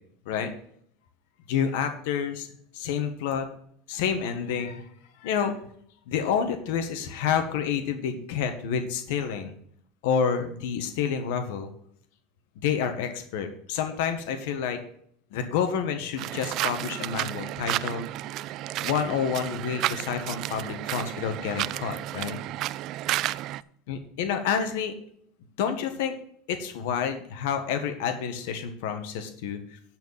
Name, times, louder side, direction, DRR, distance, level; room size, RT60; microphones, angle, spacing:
voice 1, 1.5-2.5 2.7-3.5 3.9-4.8 5.2-5.6 6.1-9.5 10.0-11.7 12.6-14.8 15.3-18.1 18.8-22.4 23.9-24.9 25.6-26.1 26.5-29.8, left 7 dB, 75° left, 7 dB, 1.4 m, -29 dB
sound 1, 16.2-23.6, right 15 dB, 50° right, 0.3 m, -32 dB
10.5 x 4.5 x 7.3 m, 0.64 s
supercardioid pair, 135°, 0 cm